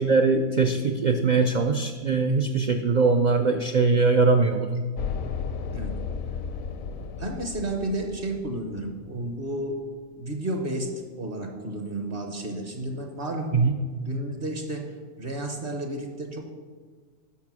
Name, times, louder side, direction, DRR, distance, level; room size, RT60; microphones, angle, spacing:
voice 1, 0.0-4.8 13.5-13.7, right 4 dB, 60° right, 5 dB, 0.4 m, -21 dB
sound 1, 5.0-9.2, left 6 dB, 85° left, 1.1 m, -34 dB
voice 2, 6.9-9.8 10.2-13.6 13.9-14.9 15.2-16.4, right 1 dB, 45° right, 4 dB, 1.1 m, -32 dB
11.5 x 4.9 x 6.1 m, 1.5 s
omnidirectional pair, 1.4 m